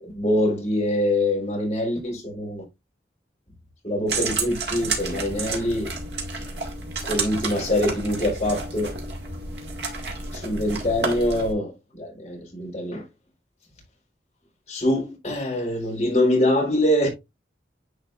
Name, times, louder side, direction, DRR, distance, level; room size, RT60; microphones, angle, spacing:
voice 1, 0.0-2.6 3.8-5.9 7.1-8.9 10.3-11.7 12.0-13.0 14.7-17.1, left 1 dB, 40° left, 3.6 m, -24 dB
sound 1, 4.1-11.5, right 3 dB, 75° right, 2.2 m, -31 dB
10.0 x 4.4 x 2.5 m
head